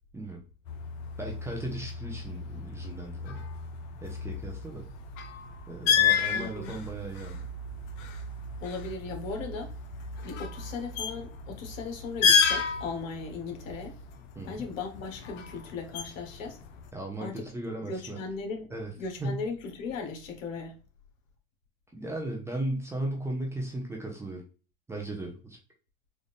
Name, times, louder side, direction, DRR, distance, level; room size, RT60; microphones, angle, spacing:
sound 1, 0.6-16.9, left 6 dB, 50° left, 0.8 m, -32 dB
voice 1, 1.2-3.4 4.0-4.9 5.7-7.4 14.4-14.6 16.9-18.2 18.7-18.9 19.2-19.4 21.9-24.4 24.9-25.6, right 2 dB, 5° right, 0.7 m, -36 dB
voice 2, 6.3-6.8 8.6-9.7 10.2-14.0 14.4-16.6 17.2-17.4 17.9-18.7 19.0-20.8, left 4 dB, 70° left, 1.3 m, -37 dB
4.0 x 2.5 x 3.4 m
hypercardioid pair, 115°, 40 cm